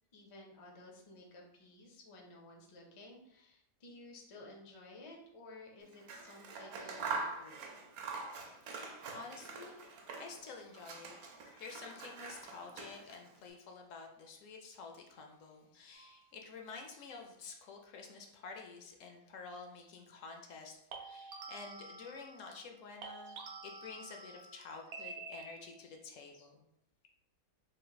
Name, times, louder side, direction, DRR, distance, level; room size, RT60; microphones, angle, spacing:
voice 1, 0.1-7.7, left 2 dB, 45° left, 0 dB, 0.4 m, -54 dB
Scissors, 5.9-10.4 10.7-13.3, right 4 dB, 85° right, 1.1 m, -44 dB
voice 2, 8.8-26.6, left 4 dB, 70° left, 3 dB, 0.9 m, -50 dB
sound 1, 15.9-16.2 20.9-22.7 23.0-25.9, right 4 dB, 60° right, 0.8 m, -49 dB
3.2 x 2.4 x 3.9 m, 0.80 s
omnidirectional pair, 1.5 m